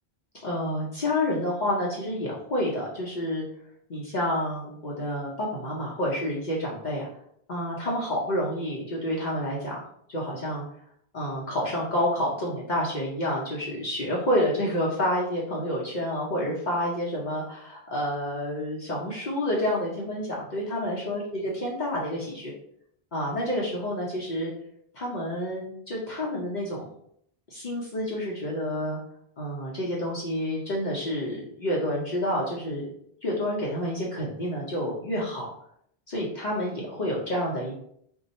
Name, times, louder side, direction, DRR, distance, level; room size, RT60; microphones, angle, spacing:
voice 1, 0.4-3.4 3.9-7.1 7.5-9.8 10.1-10.6 11.1-22.5 23.1-24.5 24.9-26.9 27.5-29.0 29.4-32.9 33.2-35.5 36.1-37.7, left 1 dB, 50° left, -4 dB, 0.7 m, -29 dB
2.6 x 2.3 x 4.1 m, 0.70 s
omnidirectional pair, 1.1 m